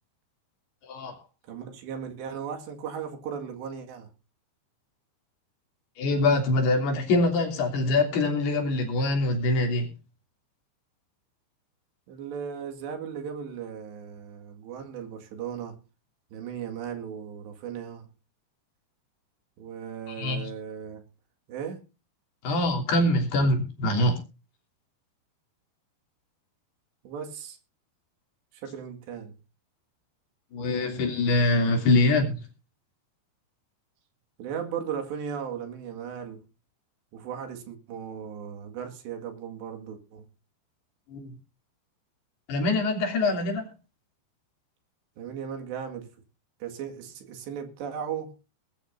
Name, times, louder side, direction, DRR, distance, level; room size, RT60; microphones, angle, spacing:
voice 1, 0.8-1.1 6.0-9.9 20.1-20.4 22.4-24.2 30.5-32.4 41.1-41.3 42.5-43.7, left 2 dB, 65° left, 5.1 m, -24 dB
voice 2, 1.5-4.1 12.1-15.8 16.3-18.1 19.6-21.0 21.5-21.8 27.0-27.6 28.5-29.3 34.4-36.5 37.1-40.3 45.2-46.1 46.6-48.3, right 7 dB, 75° right, 4.1 m, -37 dB
21.0 x 11.5 x 2.7 m
omnidirectional pair, 5.2 m